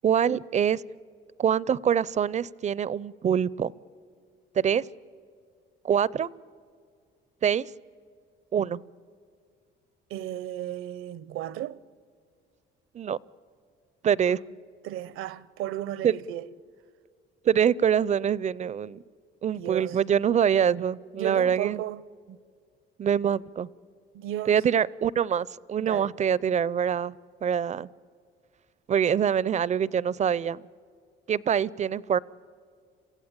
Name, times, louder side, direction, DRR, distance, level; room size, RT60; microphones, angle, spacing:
voice 1, 0.0-0.8 1.4-3.7 4.6-4.9 5.8-6.3 7.4-7.7 8.5-8.8 12.9-13.2 14.0-14.4 16.0-16.1 17.4-19.0 19.4-21.8 23.0-23.7 24.5-27.2 27.4-27.9 28.9-30.7 31.3-32.2, right 8 dB, 35° right, 0.5 m, -24 dB
voice 2, 10.1-11.8 14.3-14.4 14.8-16.5 19.5-20.0 21.2-22.0 24.1-24.6 25.8-26.1, right 13 dB, 75° right, 0.8 m, -34 dB
27.0 x 16.0 x 8.8 m
cardioid pair, 115°, 21 cm